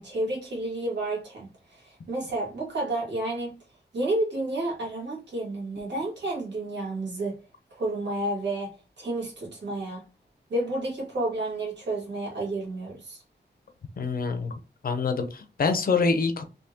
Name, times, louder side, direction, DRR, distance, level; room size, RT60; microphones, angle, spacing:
voice 1, 0.0-3.5 3.9-7.4 7.8-10.0 10.5-13.2, right 2 dB, 80° right, 1.6 m, -31 dB
voice 2, 14.0-14.5 14.8-16.4, left 4 dB, 55° left, 0.5 m, -25 dB
3.5 x 2.7 x 2.7 m
wide cardioid pair, 180°, 18 cm